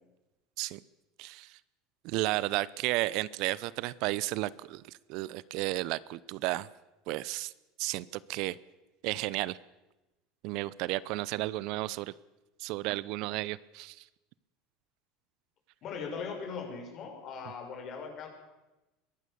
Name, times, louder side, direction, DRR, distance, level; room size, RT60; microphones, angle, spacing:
voice 1, 1.2-1.5 2.0-4.8 5.1-6.7 7.1-7.5 7.8-8.6 9.0-9.6 10.4-12.1 12.6-14.0, right 18 dB, 65° right, 20 dB, 0.7 m, -33 dB
voice 2, 15.8-18.3, left 5 dB, 45° left, 3 dB, 6.5 m, -39 dB
22.0 x 17.0 x 6.9 m, 1.0 s
supercardioid pair, 115°, 0 cm